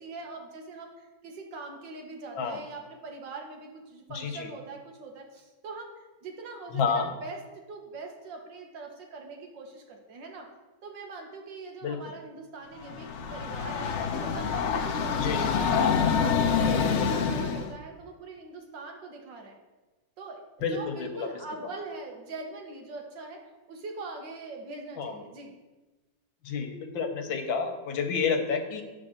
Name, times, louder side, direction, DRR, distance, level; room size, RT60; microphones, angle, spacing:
voice 1, 0.0-10.5 10.8-16.3 16.6-19.5 20.2-25.5, right 3 dB, 70° right, 2 dB, 1.9 m, -42 dB
voice 2, 4.1-4.5 6.7-7.1 11.8-12.0 15.2-15.5 20.6-21.3 25.0-25.1 26.4-28.8, left 5 dB, 85° left, 5 dB, 1.7 m, -29 dB
Train, 12.8-17.7, left 6 dB, 70° left, 0.6 m, -26 dB
9.9 x 4.2 x 6.5 m, 1.2 s
omnidirectional pair, 2.1 m